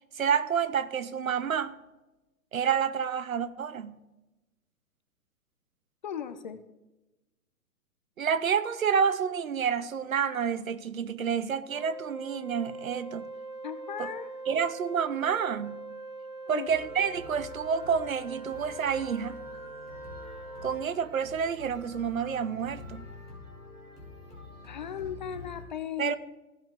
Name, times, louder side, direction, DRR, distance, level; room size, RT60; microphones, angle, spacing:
voice 1, 0.2-1.7 2.5-4.0 8.2-13.2 14.0-14.1 14.5-15.8 16.5-19.4 20.6-23.1 26.0-26.2, right 7 dB, 65° right, 0.8 m, -29 dB
voice 2, 6.0-6.6 13.6-14.6 16.5-16.7 24.6-26.2, left 9 dB, 30° left, 0.5 m, -37 dB
Wind instrument woodwind instrument, 11.7-20.8, right 3 dB, 30° right, 1.3 m, -42 dB
sound 1, 16.7-25.6, left 2 dB, 80° right, 3.4 m, -47 dB
15.5 x 5.7 x 3.5 m
figure-of-eight pair, 115°, 45 cm